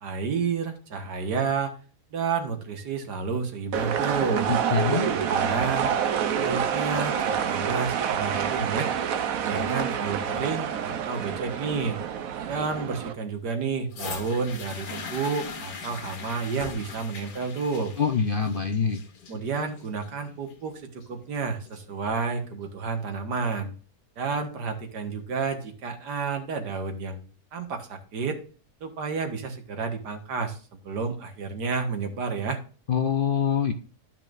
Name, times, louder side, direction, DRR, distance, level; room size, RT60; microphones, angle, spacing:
voice 1, 0.0-1.8 2.1-4.5 5.0-5.9 6.3-8.9 9.4-12.0 12.5-17.9 19.3-23.7 24.2-27.2 27.5-28.4 28.8-32.6, right 5 dB, 85° right, 5 dB, 2.0 m, -30 dB
sound 1, 3.7-13.1, right 8 dB, 60° right, 1.2 m, -27 dB
voice 2, 4.5-5.1 18.0-19.0 32.9-33.7, left 6 dB, 55° left, 6 dB, 0.6 m, -25 dB
sound 2, 13.9-21.9 22.7-22.8, left 5 dB, 80° left, 1.8 m, -40 dB
12.5 x 5.7 x 2.5 m, 0.39 s
omnidirectional pair, 1.7 m